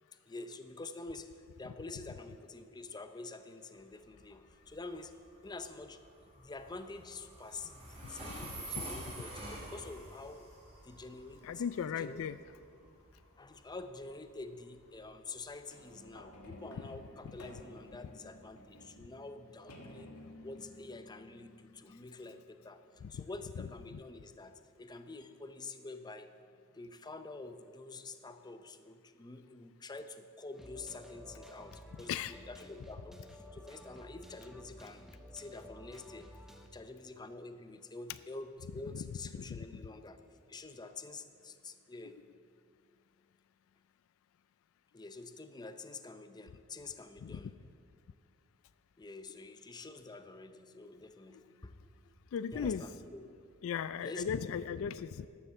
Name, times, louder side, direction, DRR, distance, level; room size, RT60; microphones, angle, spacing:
voice 1, 0.3-5.1 5.4-6.0 6.4-10.5 10.8-11.6 12.0-12.3 13.3-20.1 20.4-26.3 26.7-36.4 36.7-40.2 40.5-42.2 44.9-47.6 49.0-52.1 52.5-53.3 54.0-54.3 54.7-54.9, left 3 dB, 20° left, 9 dB, 0.6 m, -47 dB
Train, 3.8-18.5, right 2 dB, 25° right, 3.3 m, -49 dB
voice 2, 11.4-12.4 23.9-24.0 32.1-32.3 38.9-39.0 39.4-39.6 47.2-47.4 52.3-52.8 53.6-55.3, left 7 dB, 65° left, 15 dB, 0.3 m, -36 dB
sound 1, 15.7-22.4 23.1-23.2, left 1 dB, 85° left, 1.5 m, -54 dB
sound 2, 30.5-36.7, equal, ahead, 0.9 m, -53 dB
12.0 x 8.0 x 7.1 m, 2.2 s
head